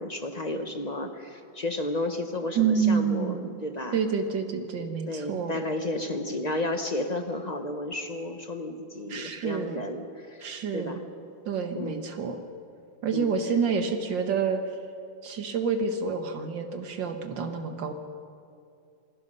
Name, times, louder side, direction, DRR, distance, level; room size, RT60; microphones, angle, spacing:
voice 1, 0.0-4.0 5.1-11.0 11.7-12.0 13.1-13.4, left 2 dB, 30° left, 6 dB, 0.8 m, -32 dB
voice 2, 2.6-3.6 3.9-5.6 9.1-9.8 10.4-11.0 11.5-12.4 13.0-14.6 15.2-17.9, right 6 dB, 65° right, 6 dB, 2.2 m, -28 dB
28.0 x 19.5 x 5.6 m, 2.4 s
omnidirectional pair, 2.2 m